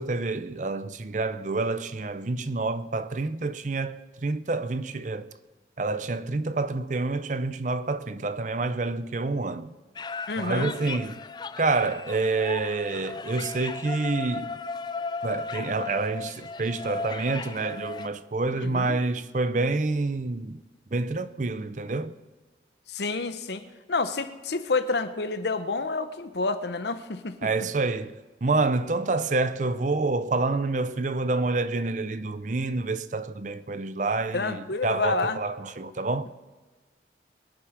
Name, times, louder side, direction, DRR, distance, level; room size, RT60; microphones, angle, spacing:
voice 1, 0.0-5.3 5.8-9.7 10.4-11.2 11.6-14.5 15.2-20.6 20.9-22.1 27.4-36.3, right 3 dB, 40° right, 0.6 m, -28 dB
sound 1, 10.0-18.1, left 4 dB, 25° left, 0.4 m, -36 dB
voice 2, 10.3-10.7 18.6-19.0 22.9-23.6 23.9-27.5 34.3-35.4, left 3 dB, 70° left, 0.9 m, -29 dB
23.5 x 9.0 x 5.0 m
head